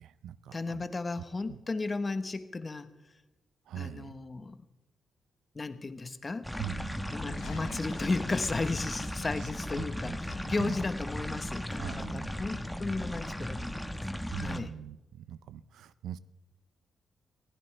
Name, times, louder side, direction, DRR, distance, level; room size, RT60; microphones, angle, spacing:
voice 1, 0.0-0.9 1.2-1.6 3.7-4.1 6.6-7.1 9.4-9.5 9.8-10.2 10.5-10.8 11.8-12.3 14.3-16.2, right 10 dB, 85° right, 16 dB, 0.5 m, -42 dB
voice 2, 0.5-2.9 3.8-4.6 5.5-6.5 7.1-14.0 14.4-14.7, left 3 dB, 30° left, 11 dB, 1.1 m, -34 dB
sound 1, 6.4-14.6, equal, 5° left, 1.2 m, -36 dB
sound 2, 7.0-9.6 10.0-11.2, left 3 dB, 90° left, 3.2 m, -47 dB
22.0 x 16.0 x 3.3 m, 1.0 s
cardioid pair, 80°, 0 cm